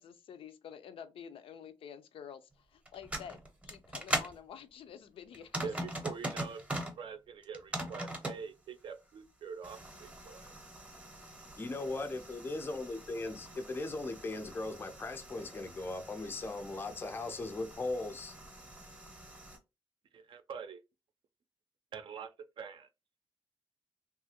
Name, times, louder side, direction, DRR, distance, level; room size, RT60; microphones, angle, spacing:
voice 1, 0.0-5.6, left 8 dB, 85° left, 0.4 m, -49 dB
sound 1, 2.9-4.4 5.3-7.0 7.4-8.4 9.6-19.6, right 1 dB, 15° right, 0.7 m, -42 dB
voice 2, 5.6-6.6 7.0-10.5 20.1-20.8 21.9-22.9, right 6 dB, 65° right, 0.4 m, -44 dB
voice 3, 11.6-18.4, left 2 dB, 25° left, 0.4 m, -38 dB
3.0 x 2.4 x 2.8 m
wide cardioid pair, 125°, 9 cm